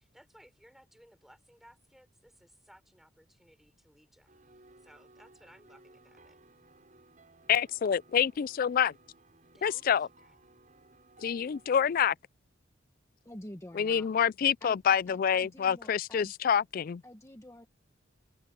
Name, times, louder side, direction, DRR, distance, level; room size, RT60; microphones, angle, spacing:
voice 1, 0.0-4.4 4.8-6.4 9.5-10.4, equal, ahead, 5.4 m, -60 dB
sound 1, 4.3-12.0, right 2 dB, 40° right, 7.0 m, -59 dB
voice 2, 7.5-8.9 9.6-10.1 11.2-12.1 13.8-17.0, left 8 dB, 45° left, 0.3 m, -27 dB
voice 3, 13.2-14.1 14.6-16.3 17.0-17.7, left 1 dB, 15° left, 1.2 m, -48 dB
head